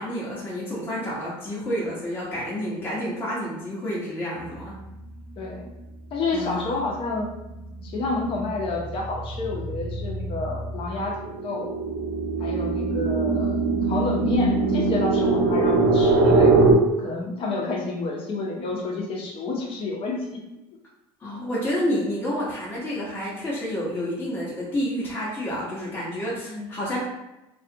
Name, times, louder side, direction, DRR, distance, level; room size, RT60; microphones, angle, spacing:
voice 1, 0.0-4.7 6.3-6.8 21.2-27.0, equal, 15° left, -7 dB, 0.8 m, -29 dB
voice 2, 5.4-5.7 6.1-7.3 7.8-11.7 12.4-16.6 17.0-20.4 21.2-21.3 26.4-26.7, left 3 dB, 50° left, 0 dB, 0.7 m, -29 dB
sound 1, 7.1-7.4 7.8-16.7, right 3 dB, 55° right, 0.6 m, -22 dB
2.4 x 2.4 x 2.7 m, 0.96 s
supercardioid pair, 95°, 12 cm